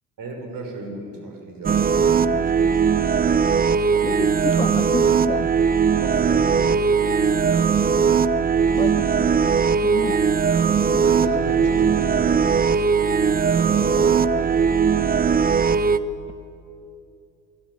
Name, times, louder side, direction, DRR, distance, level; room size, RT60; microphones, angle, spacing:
voice 1, 0.2-2.8 6.0-6.8 7.1-7.7 8.7-8.9 10.9-12.8 13.4-14.7, right 2 dB, 50° right, 3 dB, 6.3 m, -35 dB
sound 1, 1.6-16.0, right 6 dB, 20° right, 0.8 m, -19 dB
voice 2, 4.0-5.5 8.8-10.2 10.9-11.0, left 5 dB, 15° left, 13 dB, 0.6 m, -31 dB
28.0 x 13.0 x 10.0 m, 2.7 s
figure-of-eight pair, 60°, 44 cm